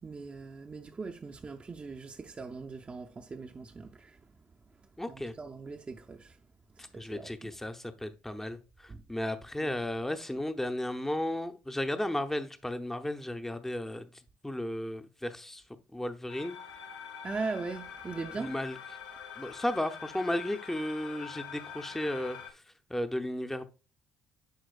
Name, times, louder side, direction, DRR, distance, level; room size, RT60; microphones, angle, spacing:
voice 1, 0.0-4.2 5.1-6.4 6.8-7.5 8.9-9.0 9.6-9.8 17.2-18.5, right 4 dB, 30° right, 0.6 m, -40 dB
voice 2, 5.0-5.3 6.9-15.6 15.9-16.6 18.3-18.8 19.4-22.6 22.9-23.6, left 1 dB, 5° left, 0.7 m, -34 dB
sound 1, 16.3-22.5, left 7 dB, 75° left, 0.8 m, -45 dB
10.5 x 4.4 x 2.4 m
hypercardioid pair, 50°, 4 cm